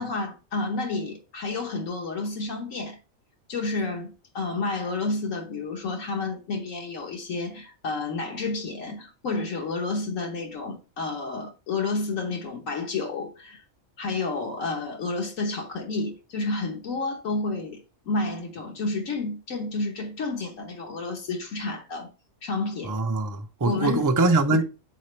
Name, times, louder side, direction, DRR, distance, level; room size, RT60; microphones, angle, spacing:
voice 1, 0.0-3.0 3.5-13.6 14.0-22.1 22.4-23.0 23.6-24.0 24.5-24.6, left 3 dB, 80° left, 1.5 m, -30 dB
voice 2, 22.9-24.6, right 3 dB, 30° right, 0.4 m, -22 dB
8.3 x 4.1 x 3.2 m
omnidirectional pair, 1.3 m